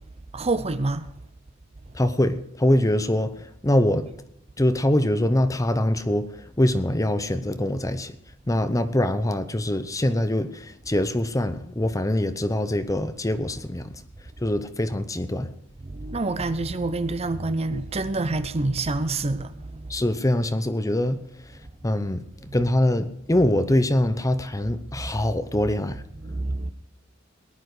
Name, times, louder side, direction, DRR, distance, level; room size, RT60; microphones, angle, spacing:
voice 1, 0.3-1.1 15.9-19.9 22.5-22.7 26.1-26.7, right 2 dB, 30° right, 0.7 m, -27 dB
voice 2, 1.9-3.3 3.6-4.1 4.6-6.3 6.6-8.1 8.5-13.9 14.4-15.5 19.9-21.2 21.8-22.2 22.5-26.0, left 1 dB, 15° left, 0.8 m, -23 dB
18.5 x 10.5 x 4.9 m
head